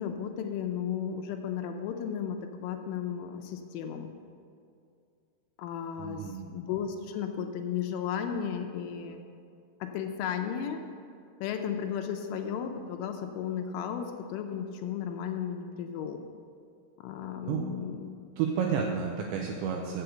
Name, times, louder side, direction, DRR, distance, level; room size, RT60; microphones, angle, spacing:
voice 1, 0.0-4.1 5.6-9.2 9.8-10.8 11.4-16.2 17.0-18.1, left 8 dB, 85° left, 5 dB, 3.0 m, -34 dB
voice 2, 6.0-6.5 17.4-17.6 18.4-20.0, right 7 dB, 85° right, 1 dB, 2.6 m, -31 dB
8.1 x 7.8 x 6.7 m, 2.4 s
omnidirectional pair, 5.9 m